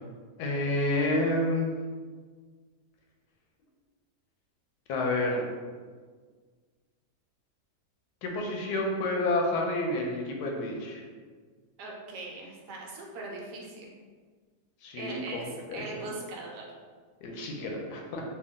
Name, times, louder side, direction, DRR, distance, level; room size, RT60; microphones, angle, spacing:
voice 1, 0.4-1.7 4.9-5.5 8.2-11.0 14.8-16.0 17.2-18.2, left 2 dB, 75° left, 0 dB, 1.1 m, -29 dB
voice 2, 11.8-13.9 15.0-16.6, right 2 dB, 80° right, -2 dB, 1.3 m, -40 dB
3.4 x 2.3 x 3.6 m, 1.5 s
omnidirectional pair, 1.8 m